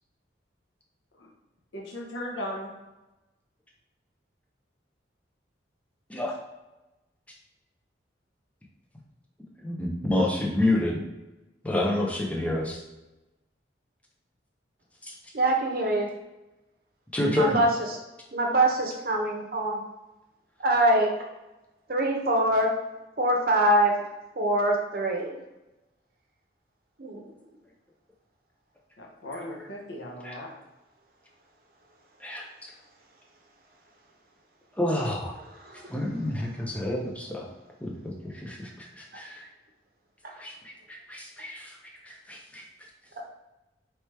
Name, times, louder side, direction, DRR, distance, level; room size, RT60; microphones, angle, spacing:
voice 1, 1.7-2.7 29.0-30.5, left 1 dB, 80° left, -1 dB, 0.8 m, -37 dB
voice 2, 9.6-11.0 11.6-12.8 15.0-15.1 17.1-17.6 29.3-29.4 30.2-30.3 32.2-32.7 34.7-35.3 35.9-37.5 37.8-39.5 40.4-41.8 42.0-42.6, left 1 dB, 5° left, -2 dB, 0.6 m, -29 dB
voice 3, 15.3-16.1 17.3-18.0 18.3-19.8 20.6-21.1 21.9-22.7 23.2-23.9 24.4-25.4 27.0-27.2 35.6-35.9, right 1 dB, 50° right, 1 dB, 0.7 m, -24 dB
3.3 x 3.0 x 4.6 m, 1.0 s
head